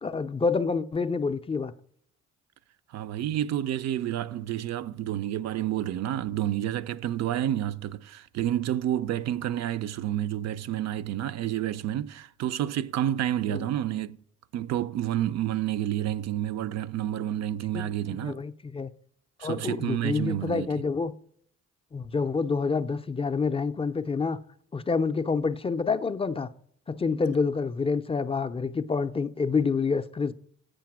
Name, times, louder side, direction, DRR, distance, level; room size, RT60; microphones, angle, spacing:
voice 1, 0.0-1.7 13.5-13.7 17.7-18.9 19.4-21.1 21.9-24.4 24.7-26.5 26.9-30.3, left 4 dB, 20° left, 0.4 m, -28 dB
voice 2, 2.9-14.2 14.5-18.4 19.4-20.7, right 12 dB, 60° right, 0.5 m, -29 dB
7.3 x 5.1 x 5.9 m
cardioid pair, 90°, 30 cm